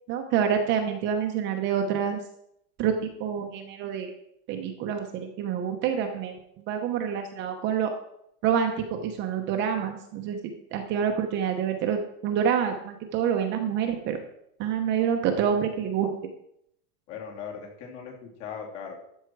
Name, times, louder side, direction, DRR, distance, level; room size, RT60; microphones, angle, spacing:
voice 1, 0.1-2.2 2.8-2.9 3.2-4.1 4.5-7.9 8.4-14.2 14.6-16.1, right 8 dB, 25° right, 4 dB, 0.8 m, -27 dB
voice 2, 17.1-19.0, left 6 dB, 50° left, -1 dB, 3.2 m, -39 dB
13.0 x 7.3 x 4.6 m, 0.76 s
supercardioid pair, 165°, 45 cm